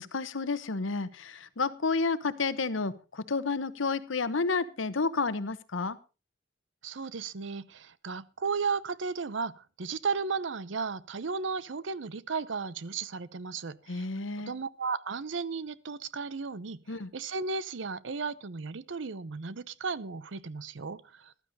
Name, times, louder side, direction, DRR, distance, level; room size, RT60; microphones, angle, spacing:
voice 1, 0.0-6.0 13.9-14.5 16.9-17.1, left 4 dB, 90° left, 1.0 m, -31 dB
voice 2, 6.8-14.1 14.4-21.3, right 5 dB, 80° right, 0.7 m, -35 dB
15.0 x 12.5 x 4.1 m
head